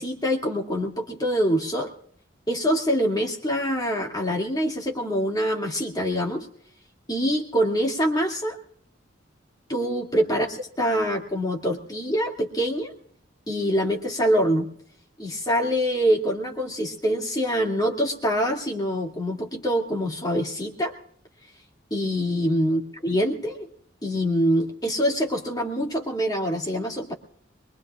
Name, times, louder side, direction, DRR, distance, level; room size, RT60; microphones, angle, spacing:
voice 1, 0.0-1.9 2.5-6.5 7.1-8.6 9.7-12.9 13.5-14.7 15.2-20.9 21.9-23.7 24.0-27.1, equal, 20° left, 0 dB, 2.5 m, -25 dB
24.0 x 22.0 x 2.5 m, 0.63 s
head